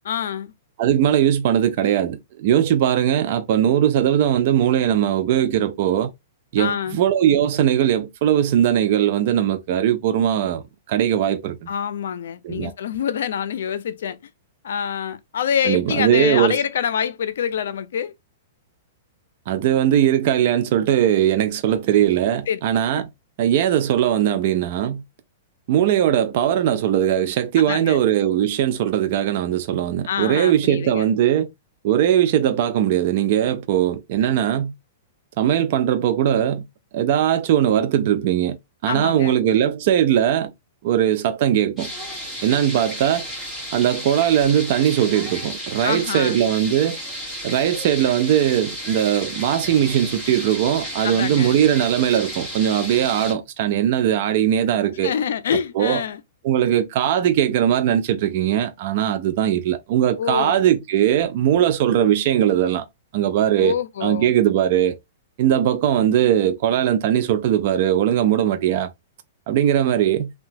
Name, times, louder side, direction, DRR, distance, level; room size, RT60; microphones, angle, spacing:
voice 1, 0.0-0.5 6.6-7.0 11.7-14.2 14.6-18.1 22.5-22.6 22.9-23.0 27.6-28.0 30.1-31.1 38.9-39.3 45.8-46.4 51.0-51.5 55.0-56.2 60.2-60.6 63.6-64.3 69.9-70.0, left 8 dB, 75° left, 0.4 m, -26 dB
voice 2, 0.8-6.1 6.5-11.7 12.4-12.7 15.7-16.6 19.5-23.1 23.4-25.0 25.7-31.5 31.8-34.7 35.4-36.6 36.9-38.6 38.8-40.5 40.8-41.9 42.4-43.3 43.7-47.0 47.4-55.1 55.8-56.0 56.4-62.9 63.1-63.8 64.0-65.0 65.4-68.9 69.5-70.3, right 10 dB, 50° right, 0.3 m, -20 dB
sound 1, 41.8-53.3, equal, 5° left, 1.4 m, -33 dB
2.7 x 2.2 x 2.6 m
hypercardioid pair, 145°, 0 cm